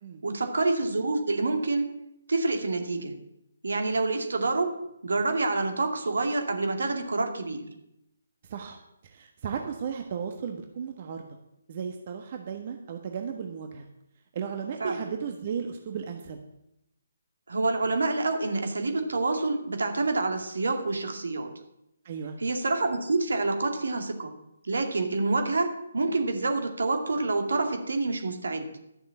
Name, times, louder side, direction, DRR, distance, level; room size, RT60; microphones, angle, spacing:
voice 1, 0.2-1.9 2.3-3.1 3.6-7.7 14.8-15.1 17.5-21.5 22.4-24.3 24.6-28.7, right 3 dB, 70° right, 5 dB, 2.3 m, -27 dB
voice 2, 9.0-11.3 11.7-13.9 14.3-16.4 22.0-22.4, right 6 dB, 40° right, 4 dB, 1.3 m, -35 dB
12.0 x 7.3 x 7.3 m, 0.84 s
figure-of-eight pair, 145°, 0 cm